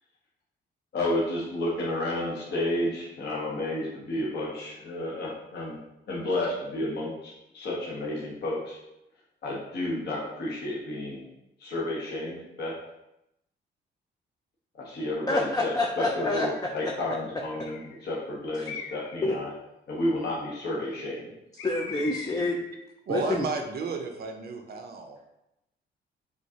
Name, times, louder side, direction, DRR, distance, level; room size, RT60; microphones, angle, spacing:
voice 1, 0.9-5.8 6.1-8.8 9.4-11.2 11.6-12.7 14.8-19.5 19.9-21.3, left 1 dB, 55° left, -5 dB, 1.2 m, -31 dB
voice 2, 15.3-16.9 19.2-19.3 21.6-22.6 23.1-23.5, left 2 dB, 20° left, 0 dB, 0.5 m, -27 dB
Bird, 16.2-16.7 17.5-18.0 18.6-19.2 21.6-22.6, left 5 dB, 85° left, 0.6 m, -41 dB
voice 3, 23.1-25.2, right 4 dB, 50° right, 4 dB, 0.7 m, -32 dB
6.1 x 2.5 x 2.8 m, 0.87 s
cardioid pair, 90°, 20 cm